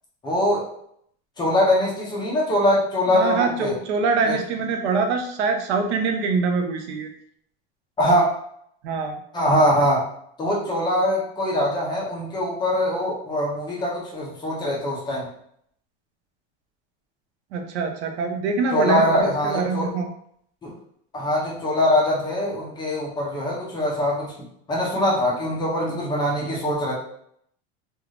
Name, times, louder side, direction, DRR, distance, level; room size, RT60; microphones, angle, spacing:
voice 1, 0.2-0.6 1.4-3.7 4.2-4.3 8.0-8.3 9.3-10.0 10.4-15.3 18.7-19.9 20.6-20.7 21.1-24.3 24.7-26.9, left 1 dB, 15° left, -4 dB, 0.4 m, -22 dB
voice 2, 3.1-7.1 8.8-9.2 17.5-20.1, right 4 dB, 90° right, 4 dB, 0.6 m, -24 dB
2.5 x 2.3 x 3.1 m, 0.69 s
supercardioid pair, 160°, 33 cm